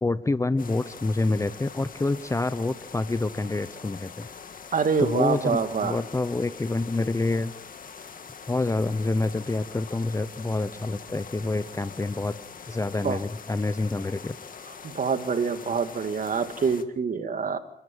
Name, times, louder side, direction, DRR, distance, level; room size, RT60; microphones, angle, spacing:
voice 1, 0.0-4.3 5.0-7.5 8.5-12.4 12.7-14.3, left 2 dB, 15° left, 15 dB, 0.8 m, -27 dB
sound 1, 0.6-16.8, left 6 dB, 45° left, 2.0 m, -44 dB
voice 2, 4.7-6.0 13.0-13.2 14.8-17.6, right 5 dB, 40° right, 9 dB, 2.2 m, -26 dB
28.5 x 12.5 x 9.2 m, 0.89 s
cardioid pair, 90°, 20 cm